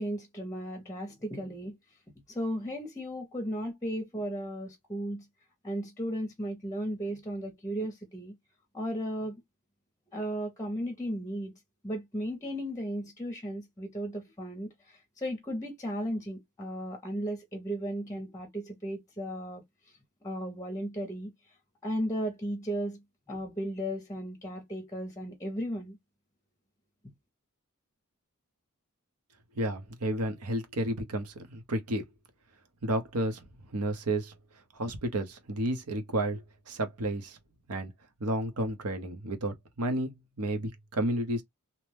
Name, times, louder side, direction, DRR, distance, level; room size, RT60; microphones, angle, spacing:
voice 1, 0.0-1.8 2.3-5.3 5.6-8.3 8.7-9.4 10.1-21.3 21.8-26.0 27.0-27.1, equal, 15° left, 0.6 m, -35 dB
voice 2, 29.6-32.0 32.8-33.5 33.7-34.3 34.7-37.4 37.7-37.9 38.2-41.4, right 1 dB, 85° right, 0.9 m, -31 dB
2.9 x 2.1 x 3.2 m
head